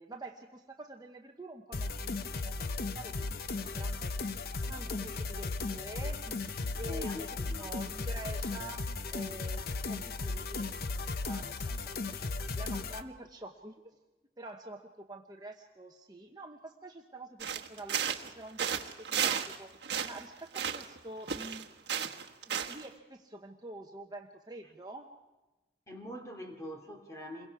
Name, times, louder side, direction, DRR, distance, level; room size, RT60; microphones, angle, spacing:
voice 1, 0.0-4.1 4.6-12.2 12.4-14.0 14.4-21.8 22.4-25.1, right 2 dB, 20° right, 2 dB, 0.9 m, -47 dB
sound 1, 1.7-13.0, left 3 dB, 55° left, 0.7 m, -36 dB
voice 2, 6.9-7.7 25.9-27.5, left 1 dB, 15° left, 3 dB, 2.6 m, -43 dB
sound 2, 17.4-18.3 18.6-19.6 19.8-21.0 21.3-22.9, right 8 dB, 65° right, 1.2 m, -33 dB
28.0 x 22.5 x 4.8 m, 1.1 s
head